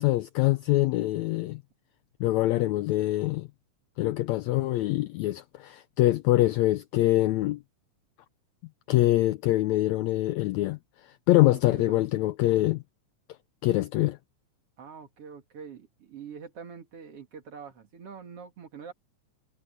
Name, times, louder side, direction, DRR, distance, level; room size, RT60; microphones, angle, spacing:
voice 1, 0.0-1.6 2.2-3.5 4.0-7.6 8.9-10.8 11.3-12.8 13.6-14.2, left 17 dB, 80° left, 1.6 m, -24 dB
voice 2, 11.5-12.0 14.8-18.9, right 6 dB, 50° right, 2.7 m, -44 dB
omnidirectional pair, 3.7 m